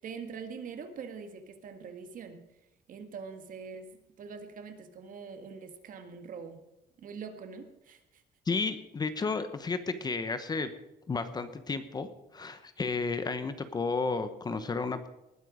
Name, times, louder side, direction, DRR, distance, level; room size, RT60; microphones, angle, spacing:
voice 1, 0.0-2.5 2.9-6.6 7.0-8.2, right 5 dB, 50° right, 8 dB, 1.8 m, -44 dB
voice 2, 8.5-10.7 11.1-15.1, left 4 dB, 25° left, 10 dB, 1.0 m, -32 dB
19.5 x 9.1 x 5.0 m, 0.94 s
cardioid pair, 160°, 18 cm